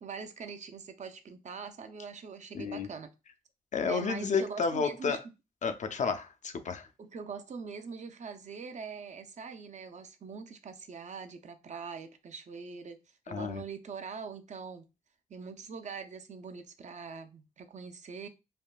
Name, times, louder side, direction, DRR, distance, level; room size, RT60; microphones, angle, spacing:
voice 1, 0.0-3.1 3.8-5.2 7.0-13.0 13.3-14.8 15.3-18.3, right 5 dB, 50° right, 0.5 m, -43 dB
voice 2, 2.5-2.9 3.7-5.2 5.6-6.9 13.3-13.6, left 5 dB, 50° left, 0.5 m, -31 dB
3.5 x 2.2 x 2.3 m
cardioid pair, 75°, 16 cm